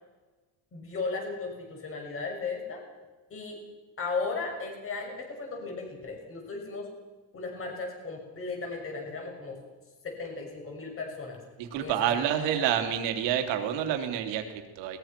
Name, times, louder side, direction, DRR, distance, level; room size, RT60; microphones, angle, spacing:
voice 1, 0.7-2.8 3.3-3.6 4.0-6.9 7.3-9.6 10.0-11.4 11.8-12.7, left 4 dB, 30° left, 2 dB, 6.4 m, -36 dB
voice 2, 11.6-15.0, right 10 dB, 75° right, 5 dB, 3.3 m, -28 dB
22.0 x 20.5 x 6.0 m, 1.2 s
cardioid pair, 150°, 44 cm